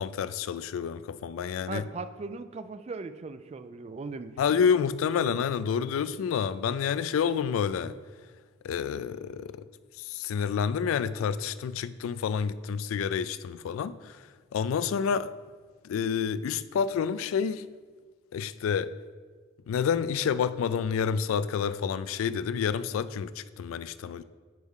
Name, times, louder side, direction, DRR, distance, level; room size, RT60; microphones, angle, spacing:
voice 1, 0.0-1.8 4.4-7.9 8.6-9.7 10.0-14.2 14.5-15.3 15.8-17.7 18.3-18.9 19.7-24.2, left 7 dB, 85° left, 0.3 m, -29 dB
voice 2, 1.7-4.6, right 3 dB, 30° right, 0.3 m, -39 dB
10.5 x 4.7 x 3.6 m
head